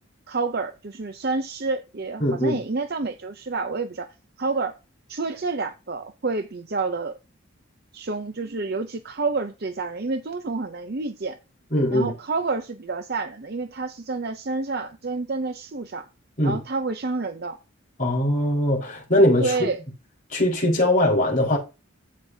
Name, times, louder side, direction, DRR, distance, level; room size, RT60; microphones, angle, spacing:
voice 1, 0.3-4.1 4.4-4.8 5.1-7.1 7.9-11.4 11.9-16.1 16.4-17.6 19.4-19.8, right 3 dB, 50° right, 0.7 m, -29 dB
voice 2, 2.2-2.6 11.7-12.1 16.4-16.6 18.0-19.7 20.3-21.6, left 1 dB, 35° left, 4.6 m, -21 dB
15.0 x 5.3 x 2.8 m
head